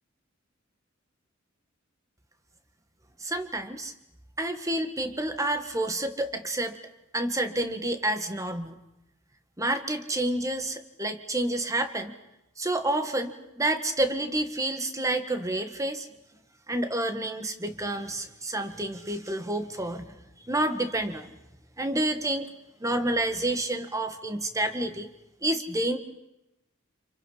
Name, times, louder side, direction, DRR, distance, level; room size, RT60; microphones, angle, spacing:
voice 1, 3.2-3.9 4.4-6.8 7.1-8.8 9.6-12.2 12.6-16.1 16.7-21.3 21.8-22.5 22.8-25.1 25.4-26.0, right 1 dB, 15° right, 7 dB, 1.6 m, -29 dB
30.0 x 28.0 x 5.7 m, 0.93 s
head